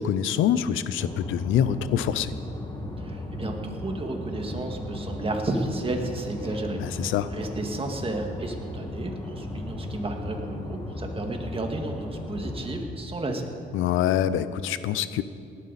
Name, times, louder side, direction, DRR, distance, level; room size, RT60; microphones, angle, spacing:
voice 1, 0.0-2.3 6.8-7.3 13.7-15.2, left 10 dB, 85° left, 14 dB, 0.6 m, -25 dB
sound 1, 1.0-12.8, left 1 dB, 20° left, 2.0 m, -36 dB
voice 2, 3.0-13.5, right 2 dB, 30° right, 3 dB, 2.0 m, -32 dB
18.5 x 11.5 x 4.2 m, 2.4 s
cardioid pair, 90°, 20 cm